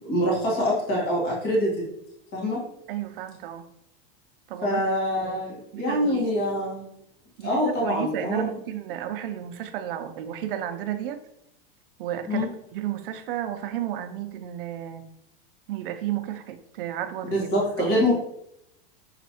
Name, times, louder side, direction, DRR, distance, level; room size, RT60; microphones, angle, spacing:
voice 1, 0.0-1.7 2.3-2.6 4.6-6.8 7.4-8.5 12.3-12.5 17.3-18.1, equal, 35° left, -3 dB, 1.6 m, -25 dB
voice 2, 2.9-3.6 4.5-4.8 5.2-5.4 5.7-6.3 7.4-11.2 12.0-15.1 15.7-17.5 17.8-18.0, right 11 dB, 65° right, 8 dB, 0.6 m, -32 dB
5.8 x 3.0 x 2.9 m, 0.79 s
supercardioid pair, 155°, 29 cm